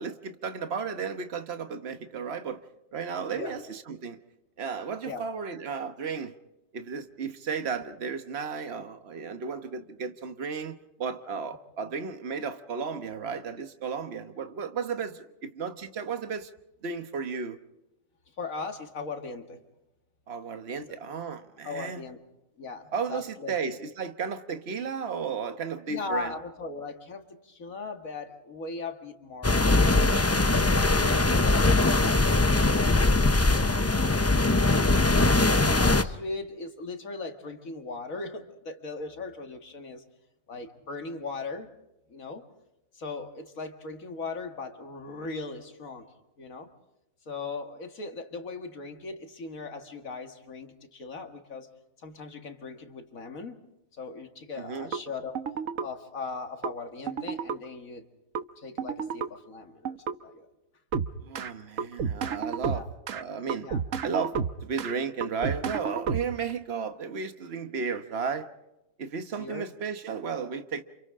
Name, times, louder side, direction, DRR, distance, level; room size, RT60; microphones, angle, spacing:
voice 1, 0.0-2.7 2.9-4.2 4.6-6.3 6.7-16.5 16.8-17.6 20.3-22.0 22.9-26.3 54.6-54.9 61.2-62.8 63.1-63.7 64.0-68.5 69.0-70.8, right 5 dB, 50° right, 1.5 m, -34 dB
voice 2, 18.4-19.6 20.9-21.0 21.6-22.2 22.6-23.5 25.9-29.9 30.8-34.8 35.4-40.0 40.5-41.7 42.1-42.5 42.9-46.7 47.3-51.7 52.0-53.7 53.9-55.4 55.8-58.1 58.6-60.5 62.6-62.9 63.6-63.8 69.4-69.7, left 3 dB, 90° left, 2.3 m, -39 dB
sound 1, 29.4-36.0, left 2 dB, 20° left, 0.4 m, -21 dB
sound 2, 54.9-55.0 55.3-55.9 56.6-56.7 57.1-57.6 58.3-58.4 58.8-59.3 59.8-60.1 60.9-61.5 61.8-63.2 63.5-64.9 65.2-66.5, right 6 dB, 75° right, 1.3 m, -31 dB
30.0 x 28.0 x 3.7 m
omnidirectional pair, 1.4 m